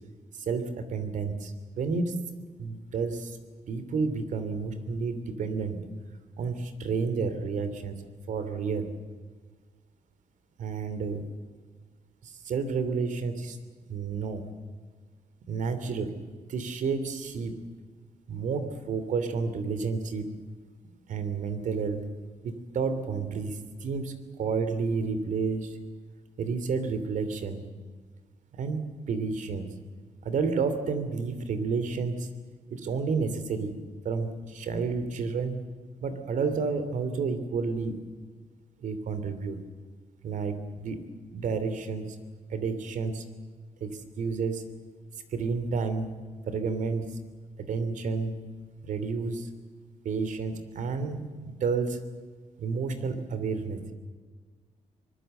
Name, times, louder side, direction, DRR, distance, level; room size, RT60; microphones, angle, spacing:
voice 1, 0.3-2.2 2.6-3.4 3.7-5.8 6.4-8.0 8.3-8.9 10.6-11.2 12.2-13.6 13.9-14.4 15.5-16.1 16.5-17.6 18.3-20.3 21.1-22.0 22.4-25.8 26.4-27.7 28.6-28.8 29.1-29.7 30.2-32.3 32.7-33.7 34.0-35.6 36.0-38.0 38.8-39.6 40.2-41.0 41.3-42.0 42.5-43.2 43.8-44.6 45.3-46.1 46.5-47.2 47.6-48.4 48.8-49.5 50.0-52.0 52.6-53.8, right 5 dB, 75° right, 10 dB, 2.9 m, -30 dB
24.0 x 20.5 x 7.9 m, 1.4 s
cardioid pair, 105°, 13 cm